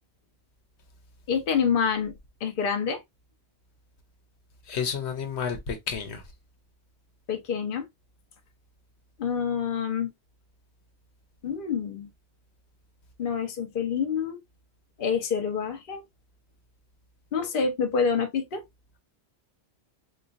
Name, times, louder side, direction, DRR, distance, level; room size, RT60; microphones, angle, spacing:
voice 1, 1.3-2.1 2.4-3.0 7.3-7.9 9.2-10.1 11.4-12.1 13.2-14.4 15.0-16.0 17.3-18.6, left 6 dB, 55° left, 0.9 m, -27 dB
voice 2, 4.7-6.2, left 6 dB, 90° left, 1.1 m, -31 dB
4.2 x 2.4 x 2.4 m
omnidirectional pair, 1.1 m